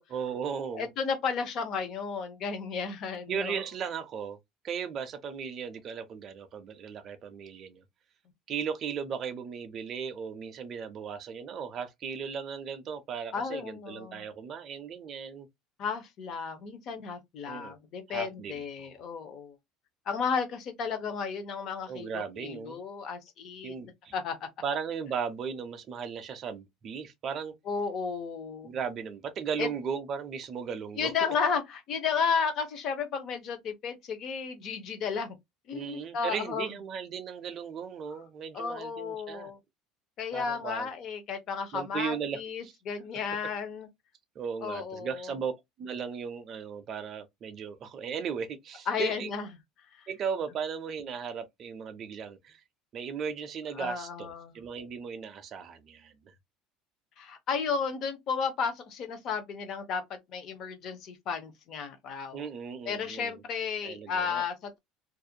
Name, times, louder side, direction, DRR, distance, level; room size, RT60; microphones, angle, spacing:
voice 1, 0.1-0.9 3.3-4.4 4.6-7.8 8.5-15.5 17.5-17.7 18.1-19.0 21.9-22.8 23.6-24.1 24.6-27.5 28.6-31.1 35.7-39.5 40.3-40.9 41.7-42.7 43.0-43.2 44.4-45.5 45.8-49.3 50.1-52.6 52.9-56.3 62.3-63.4 63.8-64.4, right 6 dB, 30° right, 0.4 m, -36 dB
voice 2, 0.7-3.6 13.3-14.3 15.8-19.5 20.1-23.7 24.1-24.4 27.7-28.7 29.6-29.7 31.0-35.4 35.7-36.7 38.5-39.6 40.2-43.9 44.6-45.3 48.9-49.5 53.8-54.6 57.2-62.4 62.9-64.8, left 6 dB, 35° left, 0.6 m, -33 dB
2.4 x 2.0 x 2.7 m
cardioid pair, 180°, 0 cm